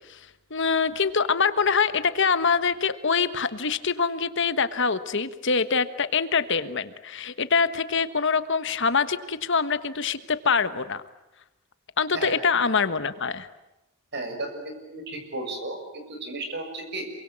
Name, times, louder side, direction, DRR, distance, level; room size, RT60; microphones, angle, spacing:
voice 1, 0.5-11.0 12.0-13.5, left 5 dB, 55° left, 12 dB, 1.4 m, -24 dB
voice 2, 14.1-17.0, right 2 dB, 50° right, 6 dB, 6.7 m, -34 dB
27.5 x 24.0 x 8.9 m, 0.96 s
head